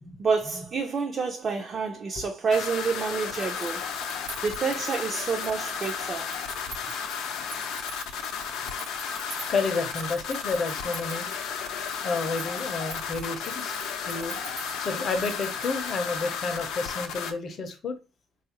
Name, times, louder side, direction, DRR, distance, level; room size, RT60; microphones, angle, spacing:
voice 1, 0.2-3.9 4.4-6.3 6.9-7.0, right 5 dB, 30° right, 0.4 m, -28 dB
sound 1, 2.5-17.3, left 7 dB, 85° left, 0.5 m, -33 dB
sound 2, 3.2-16.2, right 4 dB, 65° right, 1.1 m, -46 dB
voice 2, 9.5-11.3 12.0-14.4 14.8-18.0, left 4 dB, 40° left, 0.6 m, -30 dB
3.7 x 2.4 x 2.8 m
cardioid pair, 165°, 0 cm